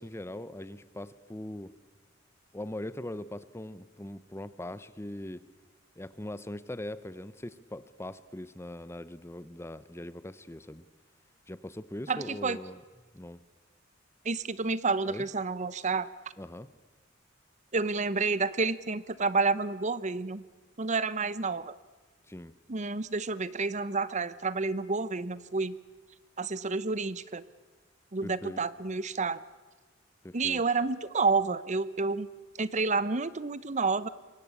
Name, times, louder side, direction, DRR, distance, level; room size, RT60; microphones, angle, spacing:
voice 1, 0.0-1.7 2.5-5.5 6.0-10.9 11.5-12.8 13.1-13.4 15.1-15.3 16.4-16.7 22.3-22.5 28.2-28.6 30.2-30.6, left 1 dB, 15° left, 16 dB, 0.8 m, -41 dB
voice 2, 12.1-12.6 14.2-16.1 17.7-20.4 20.8-21.7 22.7-25.8 26.4-27.4 28.1-29.4 30.3-32.3 32.6-34.1, right 4 dB, 40° right, 17 dB, 0.8 m, -29 dB
26.5 x 23.0 x 8.4 m, 1.3 s
head